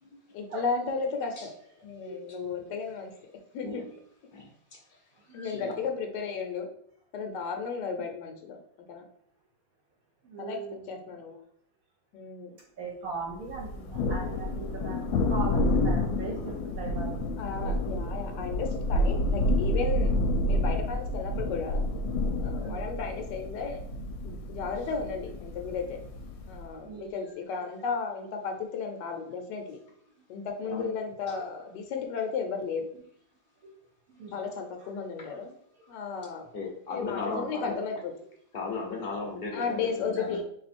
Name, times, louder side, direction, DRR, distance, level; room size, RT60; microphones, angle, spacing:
voice 1, 0.3-1.5 1.8-3.1 3.5-3.8 5.3-6.7 7.1-8.6 8.9-9.1 10.4-10.6 10.9-11.4 12.1-12.5 17.4-20.1 20.5-21.9 22.4-23.8 24.2-26.0 26.5-29.8 30.3-32.9 34.3-35.5 35.9-36.5 36.9-38.1 39.5-40.4, left 5 dB, 70° left, 4 dB, 1.3 m, -34 dB
voice 2, 2.1-2.5 5.3-5.6 10.2-11.0 12.8-17.3 22.6-22.9 26.8-27.2 30.7-31.0 34.1-34.5 35.3-35.4, right 4 dB, 60° right, -1 dB, 1.1 m, -39 dB
voice 3, 5.3-5.7 30.6-30.9 31.3-31.4 36.5-37.7 38.5-40.4, left 4 dB, 45° left, -1 dB, 0.7 m, -36 dB
Thunder, 13.5-26.7, left 1 dB, 90° left, 1.3 m, -29 dB
3.5 x 3.0 x 4.2 m, 0.68 s
omnidirectional pair, 2.0 m